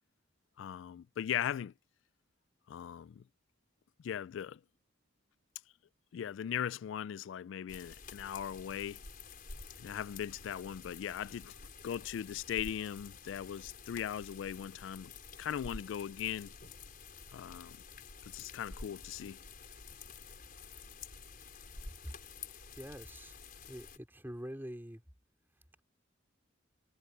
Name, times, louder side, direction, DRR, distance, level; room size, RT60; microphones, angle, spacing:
voice 1, 0.6-1.7 2.7-3.2 4.0-4.6 6.1-9.0 9.8-11.6 11.8-15.1 15.4-16.5 17.3-17.8 18.3-19.4, left 9 dB, 75° left, 0.3 m, -39 dB
sound 1, 7.7-24.0, left 4 dB, 50° left, 5.2 m, -50 dB
voice 2, 22.8-23.4 23.7-25.0, equal, 10° right, 3.4 m, -45 dB
head